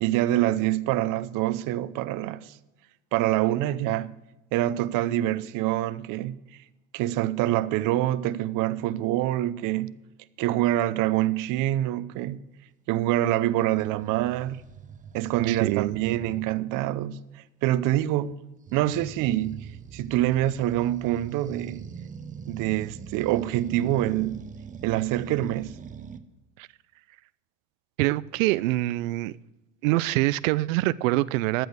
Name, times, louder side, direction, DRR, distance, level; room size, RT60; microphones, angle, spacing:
voice 1, 0.0-2.6 3.1-4.1 4.5-6.3 6.9-9.9 10.4-12.4 12.9-14.6 15.1-17.2 17.6-18.3 18.7-19.6 19.9-21.8 22.5-24.4 24.8-25.7, right 14 dB, 55° right, 0.8 m, -25 dB
sound 1, 13.8-16.6 18.7-26.2, right 6 dB, 20° right, 0.7 m, -42 dB
voice 2, 15.4-16.0 26.6-26.7 28.0-29.3 29.8-31.7, right 18 dB, 85° right, 0.5 m, -25 dB
13.5 x 6.3 x 6.7 m
supercardioid pair, 115°, 38 cm